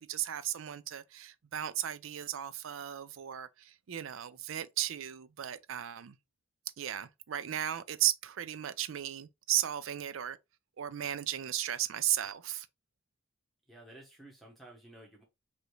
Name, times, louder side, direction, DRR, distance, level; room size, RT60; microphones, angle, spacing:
voice 1, 0.0-6.2 6.8-10.4 10.8-12.7, right 11 dB, 80° right, 0.4 m, -35 dB
voice 2, 13.7-15.2, right 1 dB, ahead, 1.0 m, -53 dB
4.9 x 2.7 x 3.1 m
head